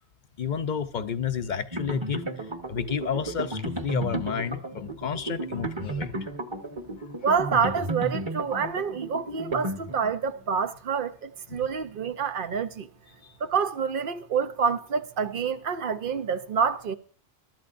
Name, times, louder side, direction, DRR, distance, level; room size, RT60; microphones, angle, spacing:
voice 1, 0.4-2.2 2.7-6.1 11.5-11.7, left 7 dB, 50° left, 0.8 m, -31 dB
sound 1, 1.7-10.3, right 2 dB, 25° right, 1.2 m, -33 dB
voice 2, 7.2-12.9 13.4-17.0, right 6 dB, 55° right, 0.9 m, -27 dB
22.0 x 12.5 x 2.6 m
omnidirectional pair, 1.1 m